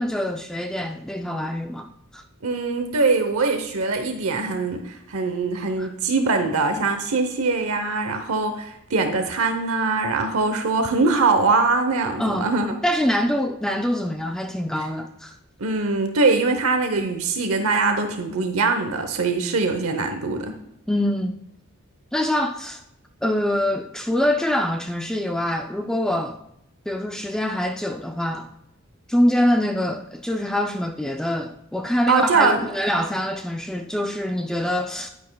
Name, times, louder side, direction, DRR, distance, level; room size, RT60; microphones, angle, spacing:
voice 1, 0.0-2.2 5.8-5.9 12.2-12.5 12.8-15.3 20.9-21.4 22.1-22.8 23.2-26.4 26.9-28.5 29.1-35.1, left 1 dB, 5° left, 4 dB, 0.3 m, -24 dB
voice 2, 2.4-12.7 15.6-20.5 32.1-32.7, right 3 dB, 80° right, 6 dB, 0.8 m, -22 dB
11.0 x 9.3 x 2.3 m, 0.82 s
head